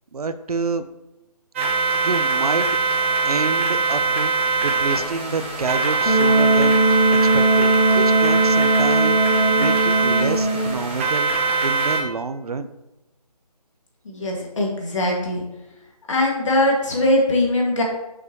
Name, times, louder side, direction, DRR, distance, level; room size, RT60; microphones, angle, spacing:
voice 1, 0.1-0.9 2.0-2.7 3.2-4.3 4.6-6.8 7.2-7.7 7.9-9.2 9.5-11.3 11.6-12.7, right 4 dB, 65° right, 11 dB, 0.6 m, -27 dB
sound 1, 1.6-12.0, right 4 dB, 20° right, 1.0 m, -22 dB
Wind instrument woodwind instrument, 6.1-10.9, right 2 dB, 80° left, 1.9 m, -19 dB
voice 2, 14.1-15.4 16.1-17.8, left 1 dB, 50° left, -1 dB, 2.0 m, -21 dB
7.6 x 6.0 x 3.0 m, 0.97 s
figure-of-eight pair, 160°, 21 cm